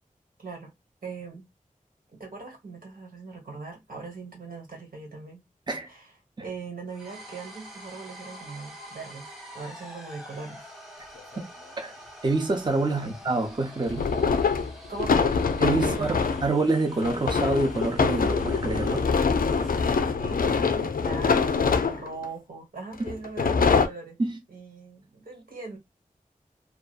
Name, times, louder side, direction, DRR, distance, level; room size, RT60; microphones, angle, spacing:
voice 1, 0.4-0.7 1.0-1.5 2.1-5.4 5.9-6.1 6.4-10.7 12.9-13.2 14.9-15.4 15.8-16.2 19.5-24.2 24.5-25.8, right 4 dB, 85° right, 1.4 m, -40 dB
sound 1, 6.9-20.1, right 1 dB, ahead, 0.9 m, -46 dB
sound 2, 11.2-11.3 13.9-16.5 17.0-22.3 23.1-23.9, left 5 dB, 80° left, 0.4 m, -24 dB
voice 2, 12.2-14.1 15.6-19.1 24.2-24.4, right 3 dB, 30° right, 0.6 m, -27 dB
2.6 x 2.3 x 2.4 m
wide cardioid pair, 70°, 15 cm